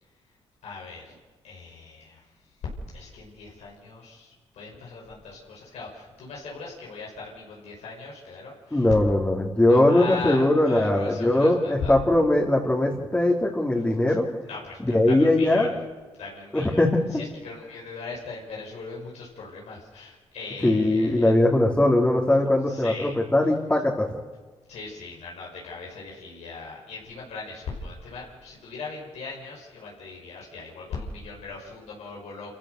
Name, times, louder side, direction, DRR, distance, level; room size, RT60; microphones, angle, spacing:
voice 1, 0.6-1.2 1.4-2.2 2.9-8.9 9.6-12.0 14.5-15.7 16.1-16.8 17.1-21.4 22.7-23.1 24.7-32.6, left 4 dB, 85° left, -3 dB, 5.5 m, -39 dB
voice 2, 8.7-14.3 14.9-15.7 16.5-17.2 20.6-24.1, left 1 dB, 15° left, -2 dB, 3.2 m, -21 dB
27.5 x 15.5 x 6.6 m, 1.3 s
cardioid pair, 75°, 11 cm